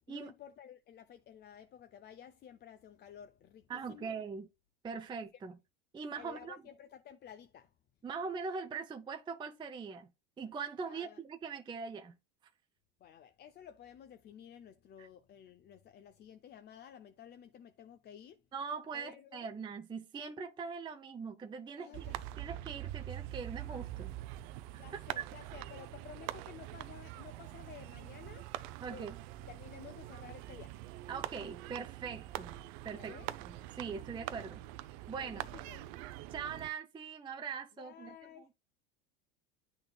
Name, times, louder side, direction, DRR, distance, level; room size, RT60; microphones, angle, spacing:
voice 1, 0.1-4.2 6.2-7.7 10.8-11.2 13.0-18.4 18.9-19.5 21.8-22.2 24.7-28.5 28.9-29.1 29.5-30.8 32.9-33.3 35.2-35.8 37.8-38.6, left 9 dB, 30° left, 0.5 m, -53 dB
voice 2, 3.7-4.5 4.8-5.6 5.9-6.6 8.0-10.1 10.4-12.2 15.0-15.1 18.5-22.0 22.4-24.1 24.7-25.2 28.8-29.2 31.1-32.5 32.8-33.1 33.4-34.6 35.1-35.5 36.3-38.1, right 5 dB, 15° right, 0.5 m, -42 dB
sound 1, 21.9-36.7, right 15 dB, 60° right, 0.6 m, -44 dB
11.0 x 3.9 x 2.2 m
supercardioid pair, 110°, 33 cm